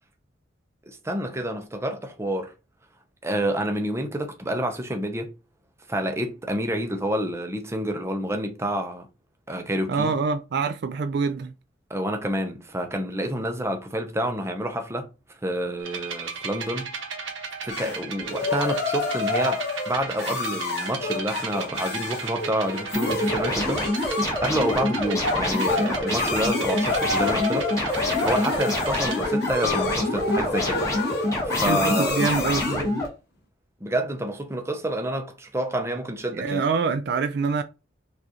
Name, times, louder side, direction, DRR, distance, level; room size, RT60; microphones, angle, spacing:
voice 1, 0.9-2.5 3.2-5.3 5.9-9.1 9.5-10.1 11.9-15.1 15.4-16.9 17.6-23.8 24.4-27.7 28.2-30.8 31.4-32.2 33.8-36.6, right 1 dB, 15° right, 0.6 m, -28 dB
voice 2, 9.9-11.5 31.7-33.0 36.3-37.6, right 5 dB, 60° right, 0.3 m, -25 dB
sound 1, 15.8-29.2, right 5 dB, 80° right, 1.1 m, -35 dB
sound 2, 17.7-32.9, left 4 dB, 55° left, 1.0 m, -29 dB
sound 3, 22.9-33.1, left 1 dB, 15° left, 1.1 m, -26 dB
4.8 x 2.5 x 2.8 m
head